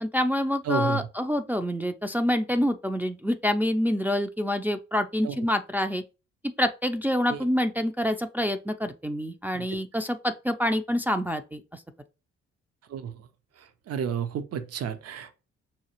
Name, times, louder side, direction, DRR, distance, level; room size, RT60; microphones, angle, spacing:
voice 1, 0.0-6.0 6.6-11.8, left 1 dB, 5° right, 0.4 m, -27 dB
voice 2, 0.7-1.1 5.2-5.4 7.3-7.4 9.5-9.7 12.9-13.1 13.9-15.3, right 8 dB, 55° right, 0.7 m, -31 dB
5.7 x 2.3 x 2.9 m
supercardioid pair, 50°, 29 cm